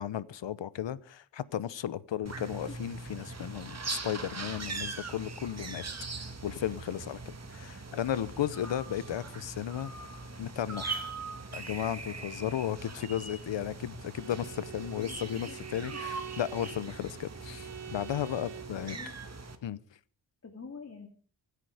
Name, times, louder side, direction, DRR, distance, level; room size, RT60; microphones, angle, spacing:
voice 1, 0.0-5.8 6.2-7.2 7.5-9.9 10.4-11.1 11.5-19.0 19.6-19.8, left 10 dB, 90° left, 1.0 m, -35 dB
sound 1, 2.3-19.6, right 4 dB, 35° right, 2.1 m, -41 dB
voice 2, 12.1-12.8 13.2-13.3 15.0-15.2 15.5-15.6 16.9-17.1 18.7-19.2 20.4-21.1, left 4 dB, 35° left, 2.5 m, -47 dB
Bowed string instrument, 14.1-18.8, right 9 dB, 75° right, 1.6 m, -46 dB
24.5 x 9.9 x 5.0 m
wide cardioid pair, 100°, 43 cm